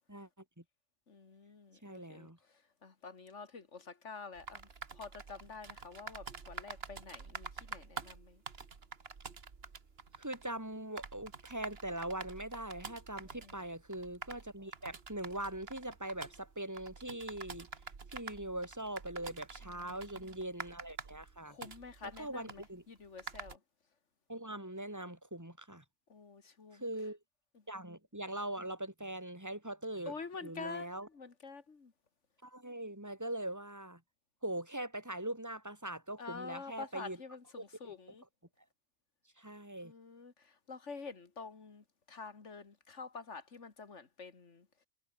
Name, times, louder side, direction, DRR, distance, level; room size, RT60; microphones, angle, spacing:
voice 1, 1.1-8.4 13.4-13.6 19.6-20.4 21.5-23.6 26.1-26.9 27.5-27.6 30.1-31.9 36.2-38.2 39.8-44.7, left 4 dB, 75° left, 2.4 m, -48 dB
voice 2, 1.8-2.4 10.2-17.7 18.1-21.6 22.0-22.8 24.3-25.8 26.7-27.2 27.7-30.1 30.4-31.1 32.4-34.0 34.4-37.2 37.8-38.0 39.4-39.9, right 1 dB, 15° right, 4.9 m, -41 dB
sound 1, 4.3-23.6, right 5 dB, 55° right, 1.8 m, -48 dB
omnidirectional pair, 1.3 m